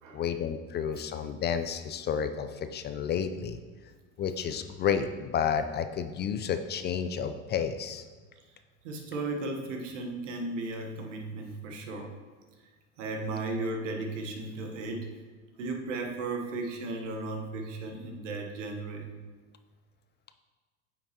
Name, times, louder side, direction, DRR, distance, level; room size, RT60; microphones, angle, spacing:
voice 1, 0.1-3.6 4.2-8.0, left 7 dB, 30° left, 9 dB, 0.4 m, -31 dB
voice 2, 8.8-12.1 13.0-15.1 15.6-19.1, right 2 dB, 80° right, 4 dB, 1.2 m, -35 dB
8.6 x 5.8 x 2.9 m, 1.4 s
hypercardioid pair, 85°, 37 cm